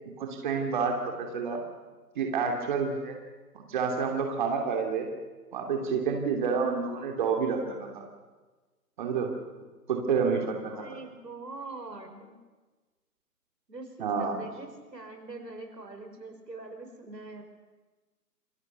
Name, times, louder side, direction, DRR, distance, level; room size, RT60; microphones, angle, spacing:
voice 1, 0.2-1.6 2.1-3.2 3.7-5.1 5.5-8.0 9.0-9.3 9.9-10.5 14.0-14.4, right 5 dB, 30° right, 2 dB, 2.8 m, -29 dB
voice 2, 10.0-12.3 13.7-17.4, right 3 dB, 90° right, 5 dB, 5.5 m, -43 dB
27.5 x 22.0 x 6.9 m, 1.3 s
figure-of-eight pair, 155°, 48 cm